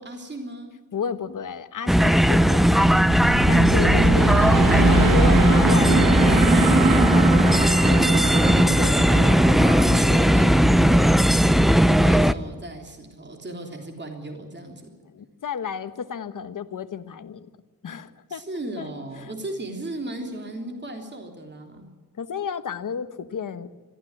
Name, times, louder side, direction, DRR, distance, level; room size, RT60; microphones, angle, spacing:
voice 1, 0.0-0.7 3.9-4.8 8.9-14.9 18.3-21.9, right 1 dB, 30° right, 3 dB, 3.4 m, -36 dB
voice 2, 0.9-3.1 3.5-4.3 4.7-8.2 8.7-9.0 9.6-10.0 15.1-17.5 17.8-18.4 18.8-18.9 19.2-19.3 22.2-23.7, left 7 dB, 65° left, 11 dB, 1.4 m, -32 dB
sound 1, 1.9-12.3, equal, ahead, 0.6 m, -17 dB
sound 2, 2.6-11.6, right 4 dB, 80° right, 1.8 m, -24 dB
22.0 x 15.0 x 9.8 m, 1.3 s
wide cardioid pair, 130°, 33 cm